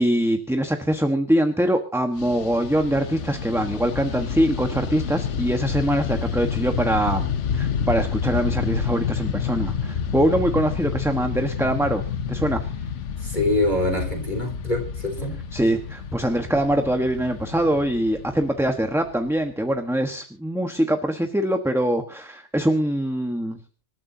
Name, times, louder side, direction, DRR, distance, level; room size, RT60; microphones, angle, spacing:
voice 1, 0.0-7.3 7.5-12.7 15.5-23.6, right 1 dB, ahead, 5 dB, 1.2 m, -23 dB
Fixed-wing aircraft airplane, 2.1-19.6, left 7 dB, 85° left, 1.3 m, -29 dB
voice 2, 13.2-15.3, left 2 dB, 40° left, 1 dB, 4.7 m, -24 dB
26.0 x 13.5 x 2.8 m, 0.39 s
omnidirectional pair, 1.2 m